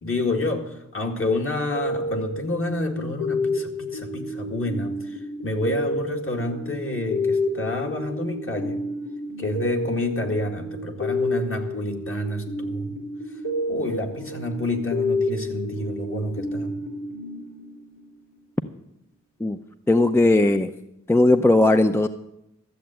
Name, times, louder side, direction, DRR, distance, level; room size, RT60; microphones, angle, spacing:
voice 1, 0.0-5.0 5.4-8.8 9.4-13.0 13.7-16.8, left 2 dB, 45° left, 2 dB, 2.0 m, -28 dB
sound 1, 1.7-18.1, left 1 dB, 90° left, 3.2 m, -30 dB
voice 2, 19.9-20.7 21.1-22.1, left 2 dB, 10° left, 8 dB, 0.5 m, -17 dB
13.0 x 7.7 x 8.9 m, 0.83 s
wide cardioid pair, 110°, 31 cm